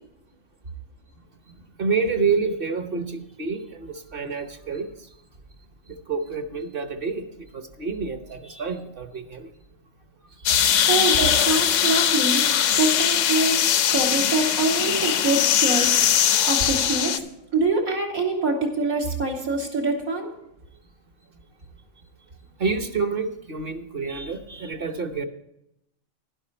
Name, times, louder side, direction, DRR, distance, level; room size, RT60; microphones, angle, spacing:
voice 1, 1.8-4.9 6.1-7.3 7.5-9.5 10.5-10.8 22.6-25.3, right 4 dB, 45° right, 8 dB, 1.1 m, -28 dB
sound 1, 10.5-17.2, left 9 dB, 65° left, 1.0 m, -21 dB
voice 2, 10.9-12.5 12.7-13.6 13.9-16.1 16.5-17.2 17.5-20.3, right 3 dB, 85° right, 0 dB, 3.0 m, -24 dB
12.0 x 11.0 x 4.4 m, 0.84 s
omnidirectional pair, 1.4 m